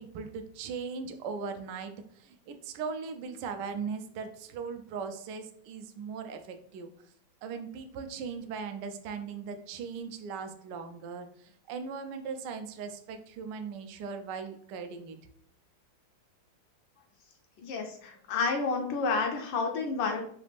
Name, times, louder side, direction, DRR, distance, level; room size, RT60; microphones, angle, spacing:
voice 1, 0.0-6.9 7.4-15.2, right 5 dB, 75° right, 7 dB, 1.0 m, -39 dB
voice 2, 17.6-20.2, left 4 dB, 75° left, 2 dB, 1.3 m, -30 dB
5.1 x 2.4 x 3.3 m, 0.65 s
omnidirectional pair, 2.3 m